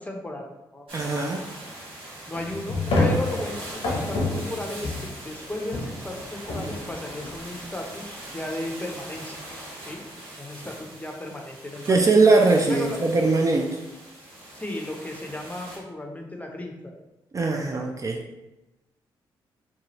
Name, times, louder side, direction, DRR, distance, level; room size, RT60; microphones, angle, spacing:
voice 1, 0.0-0.9 2.3-9.4 9.9-10.0 10.4-12.1 12.7-13.0 14.5-17.0, left 1 dB, 15° left, 2 dB, 0.6 m, -35 dB
voice 2, 0.9-1.4 11.9-13.7 17.3-18.2, right 3 dB, 30° right, 1 dB, 0.4 m, -20 dB
sound 1, 0.9-15.8, right 1 dB, 60° right, 1.2 m, -41 dB
sound 2, 2.3-5.3 5.6-8.0, left 2 dB, 75° left, 0.8 m, -28 dB
2.7 x 2.3 x 2.9 m, 0.97 s
supercardioid pair, 50°, 10 cm